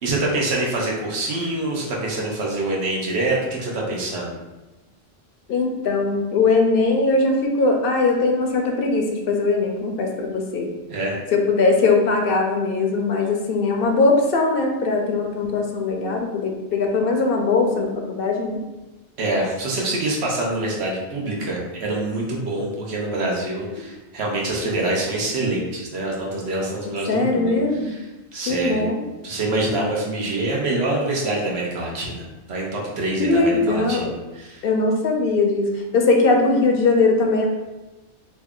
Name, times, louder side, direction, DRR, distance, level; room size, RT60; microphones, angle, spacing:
voice 1, 0.0-4.3 10.9-11.2 19.2-28.0 28.3-28.9 29.2-34.6, right 2 dB, 85° right, -3 dB, 1.1 m, -25 dB
voice 2, 5.5-10.7 11.3-18.6 27.1-27.9 28.5-29.0 33.2-34.1 34.6-37.5, left 3 dB, 70° left, 2 dB, 0.7 m, -20 dB
3.2 x 2.4 x 3.5 m, 1.1 s
omnidirectional pair, 1.1 m